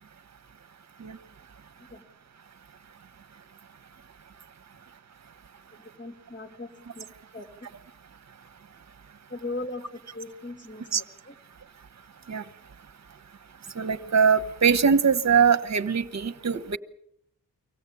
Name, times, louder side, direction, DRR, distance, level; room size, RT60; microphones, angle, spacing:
voice 1, 6.0-7.1 7.3-7.5 9.3-11.3, left 2 dB, 30° left, 4 dB, 2.6 m, -38 dB
voice 2, 13.7-16.8, right 6 dB, 45° right, 10 dB, 1.2 m, -22 dB
24.5 x 17.0 x 8.6 m, 0.71 s
wide cardioid pair, 165°, 36 cm